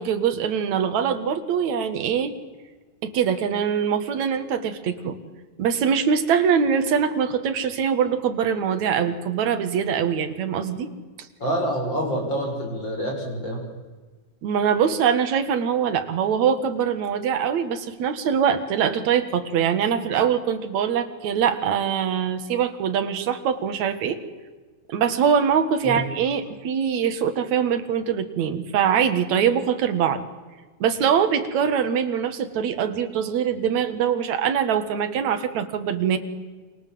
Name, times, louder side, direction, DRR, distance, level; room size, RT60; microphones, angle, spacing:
voice 1, 0.0-2.3 3.0-5.2 5.6-10.9 14.4-24.2 24.9-30.2 30.8-36.2, right 7 dB, 55° right, 8 dB, 2.7 m, -23 dB
voice 2, 11.4-13.6 25.8-26.0, right 1 dB, 30° left, 0 dB, 7.7 m, -27 dB
28.5 x 25.5 x 7.8 m, 1.3 s
omnidirectional pair, 4.4 m